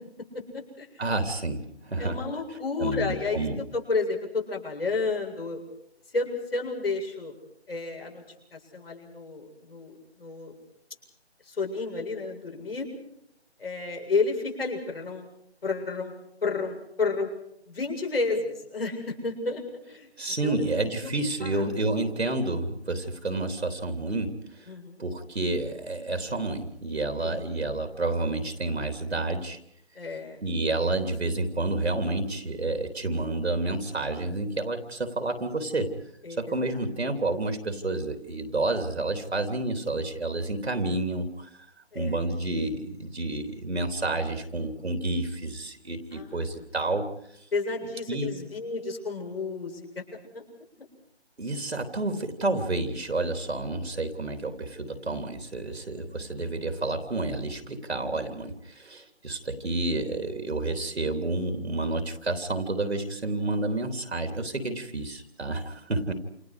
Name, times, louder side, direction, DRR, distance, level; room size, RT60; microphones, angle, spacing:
voice 1, 0.3-1.0 2.0-5.6 6.1-7.3 7.7-8.2 8.5-10.6 11.5-12.9 13.6-15.3 15.6-16.1 16.4-17.3 17.7-19.6 19.9-20.1 20.4-20.6 21.0-21.1 21.4-21.6 24.7-25.0 27.2-27.7 30.0-30.4 36.2-36.5 41.9-42.2 46.1-46.5 47.5-49.9 50.3-50.4 50.8-50.9, left 4 dB, 60° left, 2 dB, 7.6 m, -31 dB
voice 2, 1.0-2.2 2.8-3.6 20.2-24.7 25.0-29.6 30.4-35.9 36.4-41.5 41.9-47.0 48.1-48.4 51.4-66.1, right 2 dB, 70° right, 7 dB, 3.4 m, -30 dB
29.0 x 29.0 x 5.0 m, 0.76 s
figure-of-eight pair, 155°, 34 cm